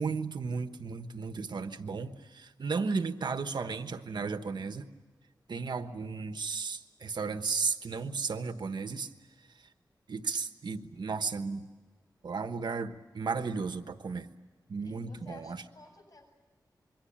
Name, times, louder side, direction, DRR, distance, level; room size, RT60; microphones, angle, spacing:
voice 1, 0.0-4.9 5.5-9.1 10.1-11.7 12.2-14.3 14.7-15.6, right 4 dB, 80° right, 9 dB, 1.2 m, -34 dB
voice 2, 14.8-16.2, left 3 dB, 55° left, 4 dB, 7.5 m, -53 dB
27.0 x 23.5 x 8.7 m, 1.3 s
wide cardioid pair, 75°, 7 cm